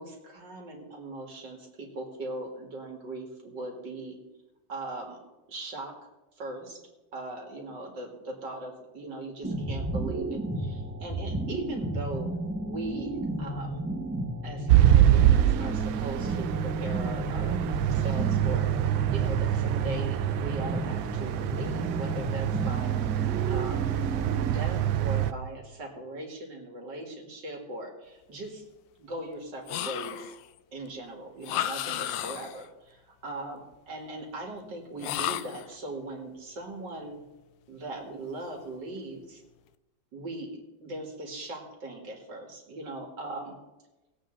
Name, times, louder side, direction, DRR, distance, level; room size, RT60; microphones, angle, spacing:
voice 1, 0.0-4.2 4.7-5.2 5.5-5.9 6.4-6.8 7.1-12.3 12.6-13.8 14.4-17.6 17.9-23.0 23.5-23.9 24.3-28.6 29.0-30.3 30.7-37.2 37.7-39.4 40.1-43.6, right 2 dB, 65° right, 1 dB, 2.6 m, -39 dB
sound 1, 9.4-24.6, right 1 dB, 10° right, 0.7 m, -33 dB
sound 2, 14.7-25.3, right 12 dB, 90° right, 1.4 m, -25 dB
sound 3, 29.7-30.5 31.4-32.7 35.0-35.7, left 12 dB, 80° left, 1.3 m, -33 dB
18.5 x 8.1 x 3.8 m, 1.0 s
omnidirectional pair, 2.1 m